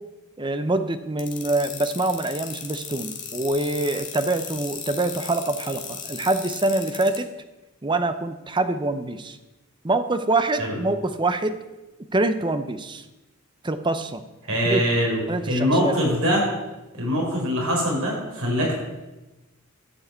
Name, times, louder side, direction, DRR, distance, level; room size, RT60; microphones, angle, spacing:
voice 1, 0.4-7.3 7.8-9.4 9.8-11.6 12.1-13.0 13.6-14.2 14.6-14.8 15.3-15.9, right 2 dB, 20° right, 10 dB, 0.7 m, -25 dB
sound 1, 1.2-7.2, left 7 dB, 35° left, 2.0 m, -35 dB
voice 2, 14.4-16.5 16.9-18.8, equal, 75° right, -2 dB, 5.1 m, -23 dB
12.5 x 6.3 x 8.3 m, 1.1 s
head